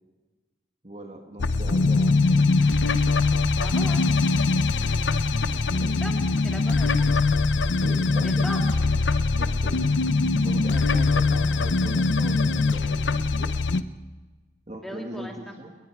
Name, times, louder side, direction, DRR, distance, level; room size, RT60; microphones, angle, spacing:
voice 1, 0.8-2.6 5.4-6.0 7.8-8.4 9.4-9.8 10.4-13.6 14.7-15.8, right 1 dB, 35° right, 2 dB, 1.8 m, -39 dB
sound 1, 1.4-13.8, left 3 dB, 90° left, 0.7 m, -22 dB
voice 2, 3.5-4.0 6.0-6.1 6.4-7.2 8.2-8.6 14.8-15.5, equal, ahead, 0 dB, 2.7 m, -38 dB
29.5 x 20.0 x 4.7 m, 1.3 s
head